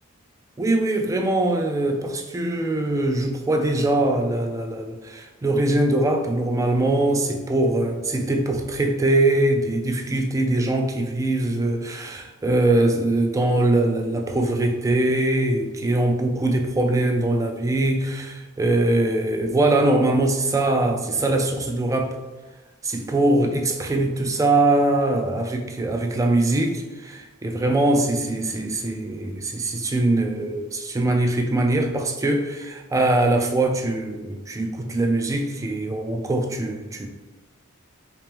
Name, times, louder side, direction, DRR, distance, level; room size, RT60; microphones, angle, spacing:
voice 1, 0.6-22.2 22.8-37.1, right 2 dB, 15° right, 0.3 m, -22 dB
3.3 x 3.0 x 3.3 m
head